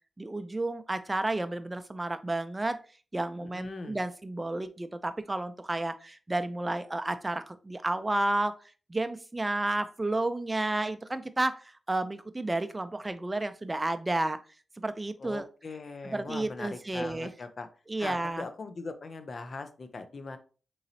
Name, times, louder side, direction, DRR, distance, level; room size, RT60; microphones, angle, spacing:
voice 1, 0.2-2.8 3.1-8.5 8.9-14.4 14.8-15.5 16.0-17.3 17.9-18.4, right 2 dB, 25° right, 10 dB, 0.4 m, -31 dB
voice 2, 3.4-4.0 15.2-17.7 18.0-20.4, left 3 dB, 60° left, 9 dB, 0.5 m, -40 dB
3.8 x 3.1 x 2.7 m, 0.37 s
cardioid pair, 50°, 0 cm